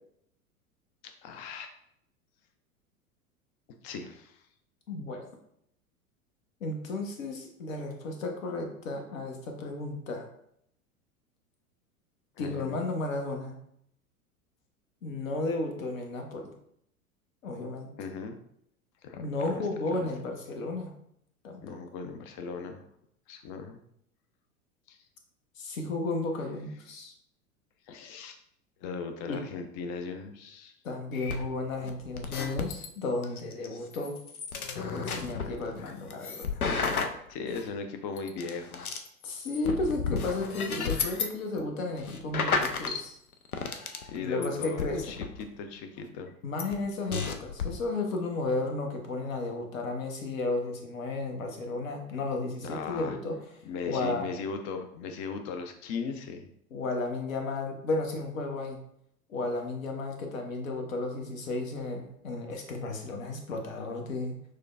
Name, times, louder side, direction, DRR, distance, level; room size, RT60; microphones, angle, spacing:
voice 1, 1.0-1.7 3.8-4.4 12.4-12.8 18.0-18.4 19.0-20.1 21.6-22.8 23.3-23.8 24.9-25.0 27.9-28.4 28.8-30.7 35.4-36.1 37.3-38.9 44.0-46.3 52.6-53.2 53.6-56.5, left 5 dB, 30° left, 6 dB, 0.4 m, -38 dB
voice 2, 4.9-5.2 6.6-10.3 12.4-13.6 15.0-16.5 17.4-17.9 19.2-20.9 21.4-21.6 25.6-27.1 29.3-29.4 30.8-34.2 34.9-36.6 39.2-43.2 44.1-45.0 46.4-53.4 53.9-54.3 56.7-58.8 59.3-64.3, left 2 dB, 65° left, 3 dB, 0.9 m, -33 dB
sound 1, 31.1-32.9 33.2-37.6 38.2-41.3 41.6-41.7 42.0-43.0 43.3-44.2 44.4-45.4 46.6-46.7 47.1-47.7, left 5 dB, 85° left, 0.6 m, -33 dB
6.3 x 2.2 x 2.4 m, 0.72 s
figure-of-eight pair, 85°, 43 cm